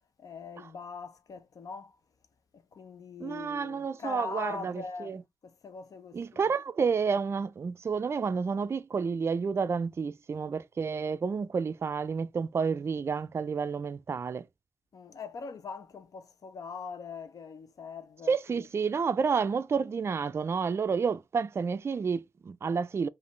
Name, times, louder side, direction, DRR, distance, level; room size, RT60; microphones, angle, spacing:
voice 1, 0.2-2.0 2.5-6.5 14.9-18.7, left 5 dB, 75° left, 0.7 m, -42 dB
voice 2, 3.2-5.2 6.1-14.5 18.3-23.1, right 5 dB, 45° right, 0.3 m, -30 dB
5.2 x 2.5 x 3.1 m
wide cardioid pair, 110°, 6 cm